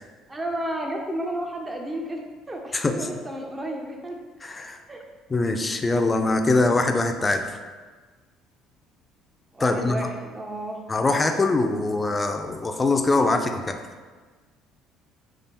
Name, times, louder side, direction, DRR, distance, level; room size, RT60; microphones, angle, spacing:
voice 1, 0.3-2.2 2.5-4.2 4.9-5.0 9.5-10.8, right 1 dB, 20° right, 2 dB, 0.6 m, -32 dB
voice 2, 2.7-3.1 4.4-4.8 5.3-7.5 9.6-10.1 10.9-13.8, left 2 dB, 25° left, 6 dB, 0.4 m, -23 dB
3.4 x 2.5 x 4.2 m, 1.4 s
supercardioid pair, 80°, 0 cm